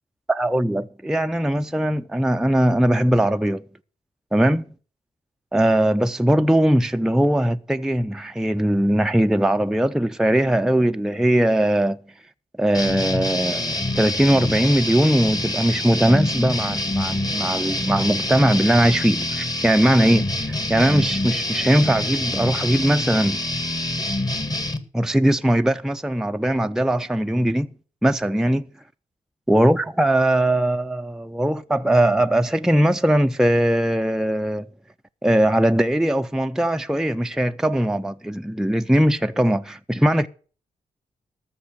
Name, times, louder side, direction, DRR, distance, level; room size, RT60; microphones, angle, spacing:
voice 1, 0.3-3.6 4.3-4.6 5.5-12.0 12.6-23.4 24.9-27.7 28.0-28.6 29.5-34.7 35.2-40.3, right 1 dB, 5° right, 0.6 m, -20 dB
sound 1, 12.7-24.8, left 1 dB, 25° left, 1.8 m, -26 dB
13.5 x 6.5 x 7.9 m
cardioid pair, 50°, 15 cm